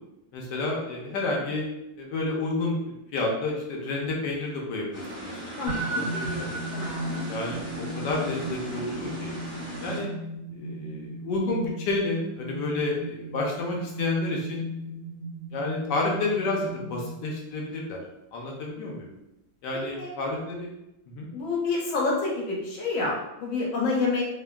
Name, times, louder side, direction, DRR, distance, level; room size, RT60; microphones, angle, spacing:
voice 1, 0.3-1.7 2.0-6.6 7.3-9.3 9.8-10.1 10.5-14.7 15.5-18.0 18.3-19.1 19.6-20.7 21.1-21.3, left 2 dB, 70° left, -1 dB, 1.2 m, -30 dB
sound 1, 4.9-10.0, right 1 dB, 35° left, 0.9 m, -37 dB
voice 2, 5.6-6.0 6.7-7.2 19.7-20.1 21.3-24.3, left 3 dB, 90° left, -3 dB, 1.5 m, -28 dB
sound 2, 5.7-17.4, right 1 dB, 75° right, 0.5 m, -36 dB
3.3 x 2.2 x 2.2 m, 0.89 s
omnidirectional pair, 2.1 m